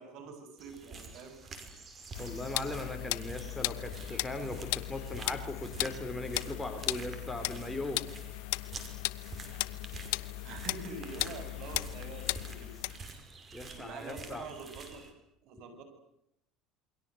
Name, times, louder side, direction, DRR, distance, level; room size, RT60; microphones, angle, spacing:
voice 1, 0.0-1.7 10.4-13.2 13.5-15.0 15.4-15.8, right 4 dB, 60° right, 8 dB, 8.0 m, -46 dB
sound 1, 0.6-15.1, right 3 dB, 25° right, 5.7 m, -48 dB
sound 2, 2.1-13.0, left 21 dB, 85° left, 1.0 m, -37 dB
voice 2, 2.2-8.0 13.5-14.4, left 1 dB, 5° left, 5 dB, 4.0 m, -39 dB
28.5 x 23.5 x 8.0 m, 0.76 s
cardioid pair, 130°, 0 cm